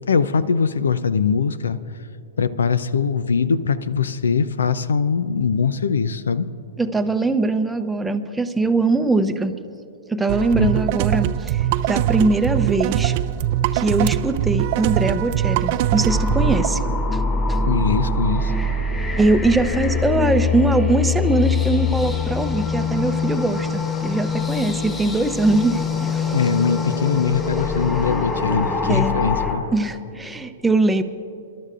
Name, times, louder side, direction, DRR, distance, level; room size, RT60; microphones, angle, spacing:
voice 1, 0.1-1.8 2.4-6.5 10.6-10.7 17.7-18.5 26.3-29.6, left 6 dB, 85° left, 16 dB, 0.5 m, -21 dB
voice 2, 6.8-9.5 10.1-13.1 13.7-16.8 17.1-17.2 17.5-17.6 19.2-26.3 28.9-29.2 29.7-31.0, right 2 dB, 5° right, 6 dB, 0.7 m, -21 dB
sound 1, 10.3-16.7, right 12 dB, 50° right, 0.4 m, -22 dB
sound 2, 16.1-29.5, left 4 dB, 15° left, 2.7 m, -23 dB
29.5 x 12.0 x 2.5 m, 2.6 s
hypercardioid pair, 115°, 0 cm